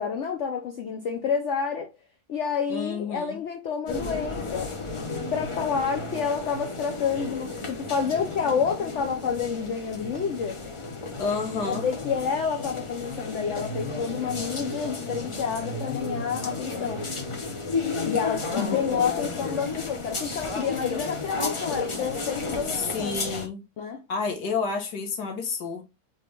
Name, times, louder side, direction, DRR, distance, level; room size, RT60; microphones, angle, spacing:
voice 1, 0.0-1.9 2.3-4.7 5.3-10.6 11.6-17.0 18.0-23.2 23.8-24.0, left 6 dB, 60° left, 0.9 m, -29 dB
voice 2, 2.7-3.4 11.2-11.9 18.6-19.4 22.7-23.6 24.1-25.8, left 5 dB, 90° left, 1.7 m, -30 dB
sound 1, 3.9-23.5, left 3 dB, 30° left, 0.6 m, -33 dB
4.1 x 3.5 x 3.2 m
omnidirectional pair, 1.7 m